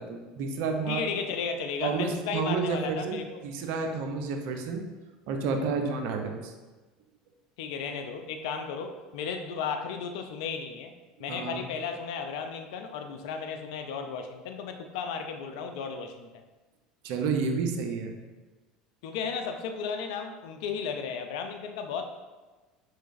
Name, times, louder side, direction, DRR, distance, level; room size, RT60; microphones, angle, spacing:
voice 1, 0.0-1.3 1.8-4.9 5.3-6.5 11.2-11.7 17.0-18.2, right 4 dB, 65° right, 4 dB, 0.5 m, -30 dB
voice 2, 0.9-3.4 7.6-10.9 11.2-16.4 19.0-22.0, left 6 dB, 75° left, 6 dB, 0.4 m, -34 dB
4.6 x 3.2 x 2.5 m, 1.2 s
hypercardioid pair, 80°, 3 cm